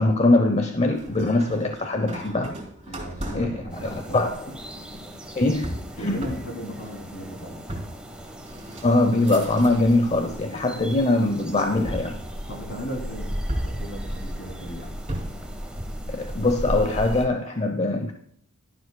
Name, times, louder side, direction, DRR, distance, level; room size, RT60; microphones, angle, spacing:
voice 1, 0.0-2.6 3.4-3.5 3.8-4.3 5.4-5.7 6.0-6.2 8.8-12.2 16.1-18.1, left 2 dB, 30° left, 6 dB, 0.7 m, -22 dB
sound 1, 1.0-10.1 10.5-11.1 11.9-12.9 13.5-15.5, right 1 dB, 30° right, 2.8 m, -37 dB
voice 2, 2.9-4.3 6.0-7.6 12.5-13.3 13.6-15.0, equal, 55° left, 2 dB, 2.9 m, -36 dB
sound 2, 3.7-17.3, equal, 5° right, 1.1 m, -36 dB
12.5 x 11.0 x 2.2 m, 0.65 s
head